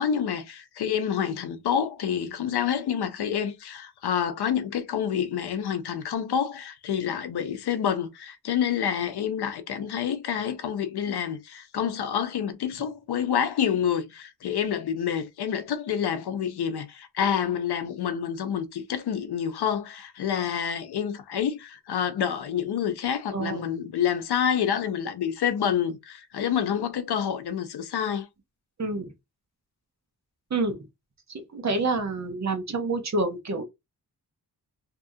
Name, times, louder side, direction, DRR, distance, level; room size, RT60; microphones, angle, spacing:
voice 1, 0.0-28.3, left 8 dB, 80° left, 0.6 m, -28 dB
voice 2, 23.3-23.6 28.8-29.1 30.5-30.8 31.3-33.6, right 3 dB, 45° right, 0.8 m, -28 dB
2.7 x 2.4 x 2.7 m
cardioid pair, 70°, 38 cm